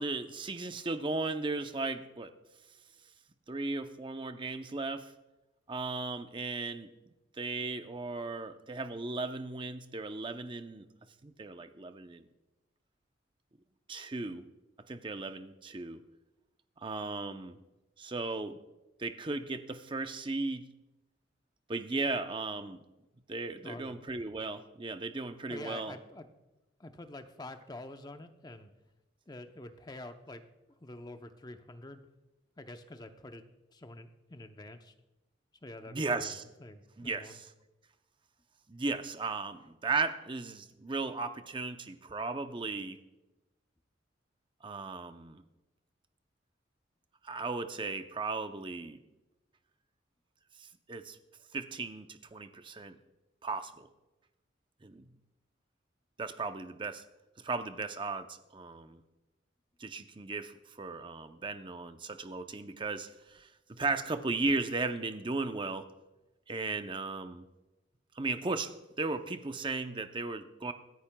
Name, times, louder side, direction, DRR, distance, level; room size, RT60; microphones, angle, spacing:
voice 1, 0.0-2.3 3.5-5.1 5.7-6.9 7.4-10.9 11.2-12.2 13.9-14.4 14.9-16.0 16.8-17.6 18.0-18.6 19.0-20.7 21.7-22.8 23.3-26.0 35.9-36.4 37.0-37.5 38.7-43.0 44.6-45.4 47.2-49.0 50.6-51.2 51.5-53.0 53.4-53.9 54.8-55.1 56.2-57.0 57.4-59.0 59.8-65.9 66.5-67.5 68.2-70.7, right 3 dB, 25° right, 9 dB, 0.6 m, -36 dB
voice 2, 23.6-24.0 25.5-26.3 26.8-28.7 29.3-32.0 32.6-33.4 33.7-34.9 35.6-37.4, left 2 dB, 20° left, 7 dB, 0.7 m, -47 dB
24.5 x 10.5 x 2.3 m, 1.0 s
head